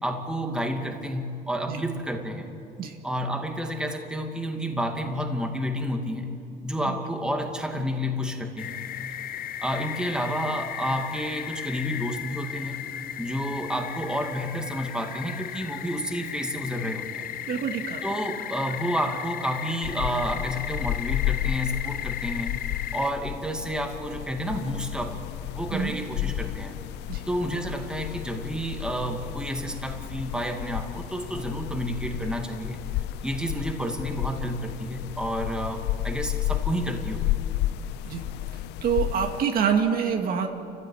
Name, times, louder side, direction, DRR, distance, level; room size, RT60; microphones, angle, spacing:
voice 1, 0.0-2.5 3.0-6.3 6.6-8.7 9.6-12.8 13.2-17.3 18.0-22.5 22.9-25.2 25.6-26.8 27.3-32.8 33.2-37.3, equal, 5° right, 3 dB, 2.4 m, -30 dB
sound 1, 8.6-23.1, left 11 dB, 60° left, 0.8 m, -36 dB
voice 2, 17.5-18.0 25.7-25.9 27.1-27.2 38.0-38.2 38.8-40.5, right 7 dB, 60° right, 4 dB, 2.1 m, -26 dB
sound 2, 19.8-39.4, left 14 dB, 85° left, 0.5 m, -32 dB
29.0 x 15.0 x 8.7 m, 2.7 s
cardioid pair, 110°, 17 cm